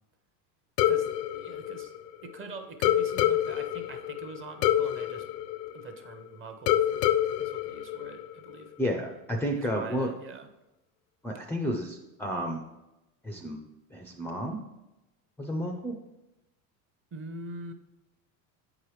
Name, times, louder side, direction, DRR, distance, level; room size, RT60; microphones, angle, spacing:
sound 1, 0.8-2.4 2.8-6.2 6.7-8.6, left 12 dB, 85° left, 0.6 m, -27 dB
voice 1, 0.9-1.9 2.2-5.3 5.7-7.0 7.4-8.7 9.5-10.5 17.1-17.7, right 3 dB, 25° right, 6 dB, 0.7 m, -44 dB
voice 2, 8.8-10.1 11.2-12.6 13.2-13.6 13.9-14.6 15.4-15.9, equal, 5° left, 2 dB, 0.4 m, -31 dB
8.2 x 4.8 x 3.1 m, 0.96 s
supercardioid pair, 105°, 47 cm